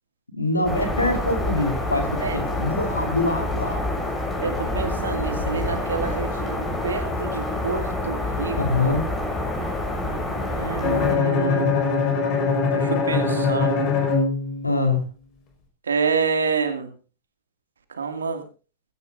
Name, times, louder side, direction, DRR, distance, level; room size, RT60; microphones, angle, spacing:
voice 1, 0.3-3.8 8.6-9.1 14.6-15.0, left 2 dB, 85° left, 4 dB, 4.2 m, -24 dB
sound 1, 0.6-11.1, left 1 dB, 20° left, 7.0 m, -27 dB
voice 2, 4.4-8.6 10.3-11.8 12.7-13.9 15.9-16.9 18.0-18.4, right 5 dB, 70° right, 7 dB, 2.4 m, -27 dB
Bowed string instrument, 10.8-14.9, left 4 dB, 40° left, 5.2 m, -22 dB
18.0 x 17.0 x 2.6 m, 0.35 s
figure-of-eight pair, 90°, 0 cm